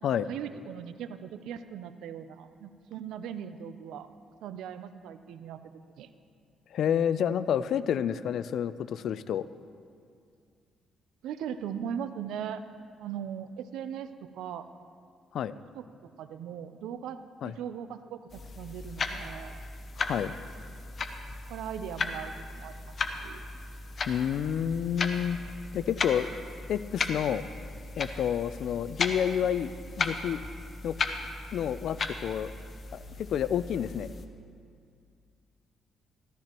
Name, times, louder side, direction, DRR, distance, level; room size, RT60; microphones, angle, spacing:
voice 1, 0.0-4.1 4.4-5.6 6.0-6.1 11.2-12.6 13.0-14.7 15.7-19.6 21.5-22.9 23.2-23.4, right 8 dB, 85° right, 11 dB, 0.5 m, -39 dB
voice 2, 6.7-9.5 15.3-15.5 17.4-17.5 20.0-20.3 24.1-25.4 25.7-26.3 26.7-27.5 28.0-29.7 30.0-30.4 30.8-30.9 31.5-32.5 32.9-34.1, left 9 dB, 70° left, 15 dB, 0.3 m, -29 dB
sound 1, 18.3-34.3, left 4 dB, 45° left, 0.8 m, -36 dB
14.5 x 13.5 x 3.0 m, 2.2 s
cardioid pair, 90°, 0 cm